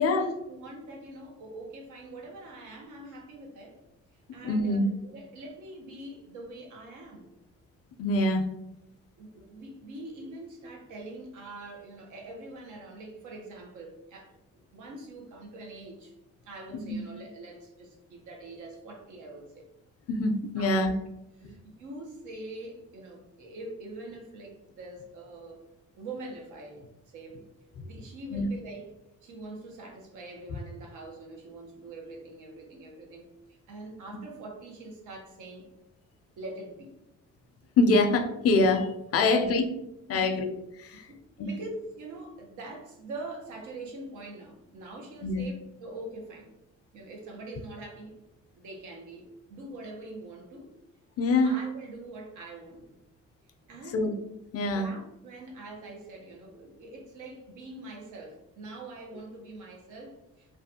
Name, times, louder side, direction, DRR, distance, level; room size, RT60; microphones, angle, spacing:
voice 1, 0.0-3.8 4.3-7.3 9.2-14.3 14.7-16.1 16.4-19.6 20.6-20.9 21.4-25.6 26.0-27.4 27.8-28.9 29.2-35.7 36.4-36.9 39.2-39.6 40.1-40.4 41.1-46.5 46.9-48.2 48.5-50.7 51.4-53.0 53.7-54.1 54.7-60.6, right 2 dB, 80° right, 0.8 m, -44 dB
voice 2, 4.4-4.8 8.0-8.5 16.7-17.0 20.1-20.9 21.4-21.5 28.3-28.5 37.8-39.7 40.1-41.1 41.4-41.5 45.2-45.4 51.2-51.5 53.9-54.1 54.5-54.9, left 2 dB, 55° left, 0.4 m, -25 dB
2.5 x 2.2 x 2.7 m
cardioid pair, 90°, 30 cm